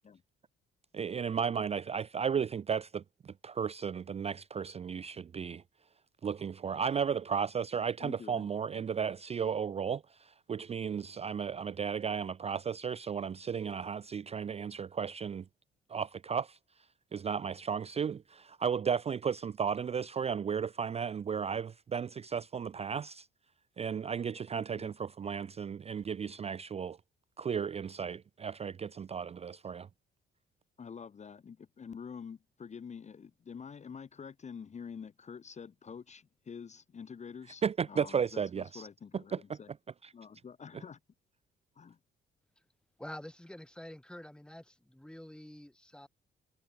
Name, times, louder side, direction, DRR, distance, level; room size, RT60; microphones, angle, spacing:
voice 1, 0.9-5.6 6.2-15.4 15.9-16.6 17.1-23.3 23.8-27.0 27.4-29.9 37.6-38.8 39.5-39.6, right 7 dB, 30° right, 0.4 m, -34 dB
voice 2, 8.0-8.5 24.5-24.9 30.8-39.7 40.1-41.0 41.7-42.0, left 6 dB, 35° left, 0.9 m, -47 dB
voice 3, 43.0-46.1, left 1 dB, 5° left, 1.7 m, -47 dB
cardioid pair, 90°, 20 cm